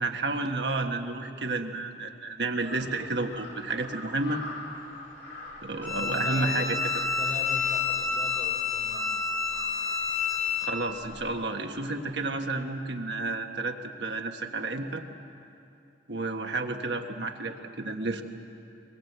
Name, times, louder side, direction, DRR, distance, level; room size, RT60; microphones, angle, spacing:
voice 1, 0.0-4.4 5.6-6.8 10.6-15.0 16.1-18.2, right 3 dB, 70° right, 4 dB, 1.5 m, -31 dB
Crow, 2.6-12.4, left 2 dB, 70° left, 4.6 m, -46 dB
voice 2, 5.8-6.8 7.2-9.1, equal, 45° left, 0 dB, 3.8 m, -40 dB
Bowed string instrument, 5.8-10.7, left 6 dB, 15° left, 2.0 m, -29 dB
23.0 x 21.5 x 8.1 m, 2.7 s
head